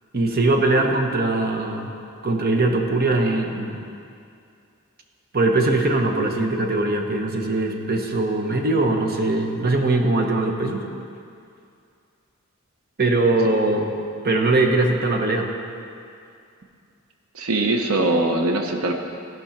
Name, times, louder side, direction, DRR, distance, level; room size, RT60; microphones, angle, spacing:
voice 1, 0.1-1.9 2.2-3.8 5.3-10.9 13.0-13.9 14.2-15.5, right 2 dB, 45° right, 3 dB, 1.0 m, -21 dB
voice 2, 17.3-19.0, right 2 dB, 80° right, 4 dB, 0.8 m, -21 dB
15.5 x 5.4 x 5.8 m, 2.4 s
head